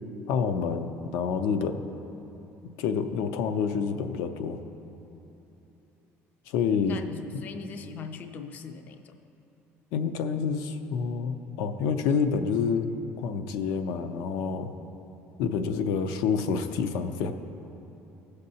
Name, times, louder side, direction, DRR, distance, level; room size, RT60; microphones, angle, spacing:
voice 1, 0.3-1.8 2.8-4.6 6.5-7.1 9.9-14.7 15.4-17.3, left 6 dB, 85° left, 8 dB, 0.5 m, -28 dB
voice 2, 6.9-9.2, left 5 dB, 35° left, 7 dB, 0.4 m, -40 dB
16.5 x 6.6 x 2.8 m, 3.0 s
cardioid pair, 170°, 5 cm